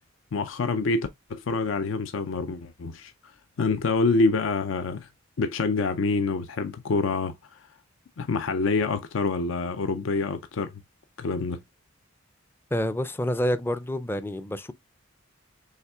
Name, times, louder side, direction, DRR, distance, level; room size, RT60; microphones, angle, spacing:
voice 1, 0.3-3.1 3.6-5.1 5.4-7.7 8.2-10.7 11.2-11.6, left 3 dB, 70° left, 0.5 m, -26 dB
voice 2, 12.7-14.7, equal, 10° left, 0.4 m, -28 dB
5.6 x 3.5 x 2.3 m
head